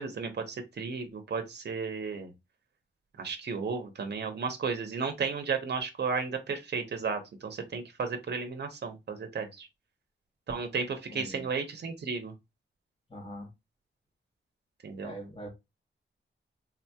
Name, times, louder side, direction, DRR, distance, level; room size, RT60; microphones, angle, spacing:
voice 1, 0.0-2.3 3.2-9.7 10.5-12.3 14.8-15.1, right 5 dB, 55° right, 0.8 m, -34 dB
voice 2, 11.1-11.4 13.1-13.5 15.0-15.5, equal, 25° left, 1.1 m, -42 dB
3.9 x 2.8 x 2.3 m
wide cardioid pair, 140°, 20 cm